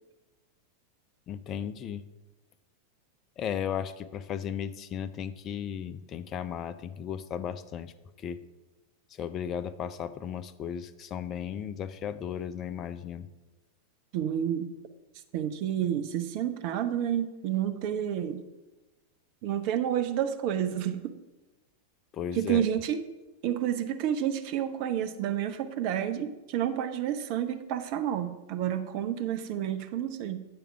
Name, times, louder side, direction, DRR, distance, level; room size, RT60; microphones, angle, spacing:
voice 1, 1.3-2.0 3.4-7.9 8.2-8.4 9.1-13.3 22.1-22.6, left 8 dB, 30° left, 12 dB, 0.4 m, -35 dB
voice 2, 14.1-14.7 15.3-18.4 19.4-21.1 22.3-23.0 23.4-30.5, right 10 dB, 45° right, 8 dB, 0.5 m, -30 dB
8.5 x 3.5 x 5.7 m, 1.1 s
figure-of-eight pair, 90°, 0 cm